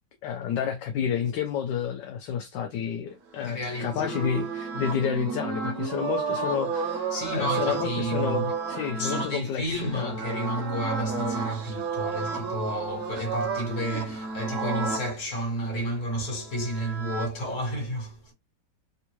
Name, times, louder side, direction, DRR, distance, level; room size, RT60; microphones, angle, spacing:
voice 1, 0.2-10.2, left 8 dB, 75° left, 1.2 m, -30 dB
sound 1, 3.3-15.1 16.2-17.3, right 4 dB, 60° right, 0.8 m, -32 dB
voice 2, 3.4-4.2 4.7-4.9 7.1-8.5 9.0-18.3, right 1 dB, 55° left, 1.8 m, -31 dB
3.6 x 2.4 x 2.9 m
omnidirectional pair, 2.0 m